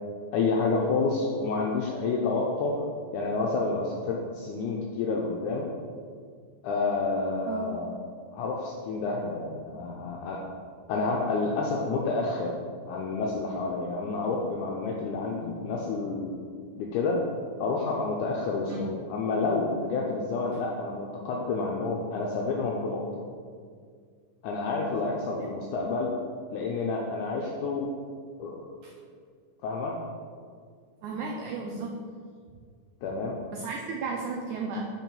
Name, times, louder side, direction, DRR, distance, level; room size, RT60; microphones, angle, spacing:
voice 1, 0.3-2.9 3.1-5.6 6.6-7.9 8.3-10.5 10.9-12.5 12.9-16.3 16.8-17.2 17.6-23.2 24.4-26.1 26.5-27.9 28.4-28.7 29.6-29.9 33.0-33.4, left 3 dB, 85° left, -2 dB, 1.8 m, -29 dB
voice 2, 25.4-25.7 28.8-28.9 31.0-32.0 33.5-34.9, right 4 dB, 90° right, 1 dB, 1.7 m, -34 dB
5.8 x 4.5 x 5.4 m, 2.1 s
omnidirectional pair, 4.1 m